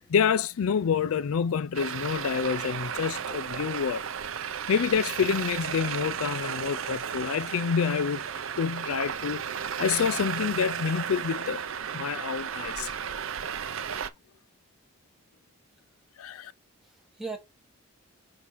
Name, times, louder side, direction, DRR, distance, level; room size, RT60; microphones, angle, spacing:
voice 1, 0.1-4.0 4.7-8.2 8.6-9.4 9.8-11.6 11.9-12.9 16.2-16.5, left 7 dB, 80° left, 0.4 m, -27 dB
Traffic noise roadway noise, 1.7-14.1, right 7 dB, 70° right, 0.6 m, -34 dB
voice 2, 16.8-17.4, right 4 dB, ahead, 1.2 m, -40 dB
6.3 x 2.7 x 5.4 m
head